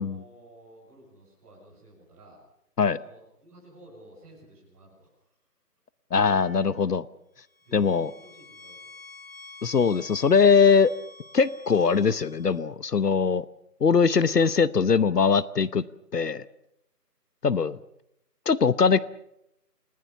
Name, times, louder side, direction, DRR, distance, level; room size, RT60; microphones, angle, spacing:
voice 1, 0.0-2.4 2.9-5.1 7.6-8.9, right 1 dB, 10° right, -7 dB, 7.3 m, -53 dB
voice 2, 6.1-7.0 7.7-8.1 9.6-10.9 11.3-13.5 13.8-15.8 16.1-16.4 17.4-17.8 18.5-19.0, left 5 dB, 70° left, 17 dB, 1.0 m, -21 dB
sound 1, 6.2-6.8 7.5-12.6, left 3 dB, 35° left, 2.0 m, -48 dB
29.5 x 19.5 x 7.0 m, 0.79 s
figure-of-eight pair, 175°, 49 cm